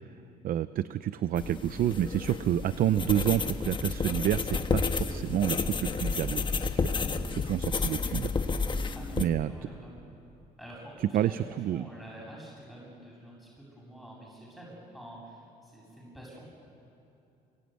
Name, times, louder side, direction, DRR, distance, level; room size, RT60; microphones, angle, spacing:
voice 1, 0.4-6.9 7.3-8.6 9.2-9.5 11.1-11.9, right 11 dB, 60° right, 13 dB, 0.7 m, -29 dB
sound 1, 1.4-9.2, left 4 dB, 30° left, 1.4 m, -31 dB
voice 2, 8.9-10.0 10.6-11.4 11.7-16.4, right 1 dB, ahead, -4 dB, 7.8 m, -48 dB
26.5 x 23.0 x 9.3 m, 2.7 s
cardioid pair, 110°, 17 cm